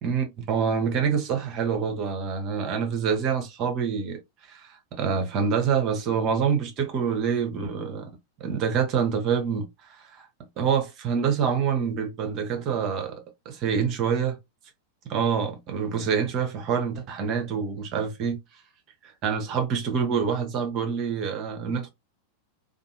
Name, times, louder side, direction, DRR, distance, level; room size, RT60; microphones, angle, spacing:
voice 1, 0.0-4.2 4.5-8.1 8.4-9.7 10.0-10.3 10.6-14.3 15.0-18.4 19.0-21.9, right 6 dB, 35° right, 0.8 m, -26 dB
2.6 x 2.4 x 2.7 m
figure-of-eight pair, 90°, 0 cm